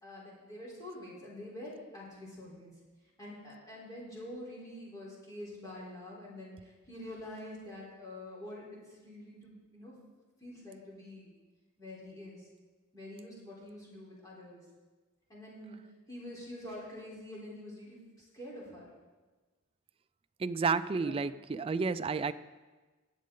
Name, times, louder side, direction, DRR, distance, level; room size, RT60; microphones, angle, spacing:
voice 1, 0.0-2.7 3.2-9.9 10.4-11.3 11.8-12.5 12.9-14.6 15.3-15.8 16.1-18.0 18.3-18.9 21.0-21.2, left 1 dB, 15° left, -6 dB, 3.6 m, -46 dB
voice 2, 20.4-22.3, right 4 dB, 25° right, 12 dB, 0.3 m, -31 dB
20.0 x 7.4 x 3.8 m, 1.3 s
head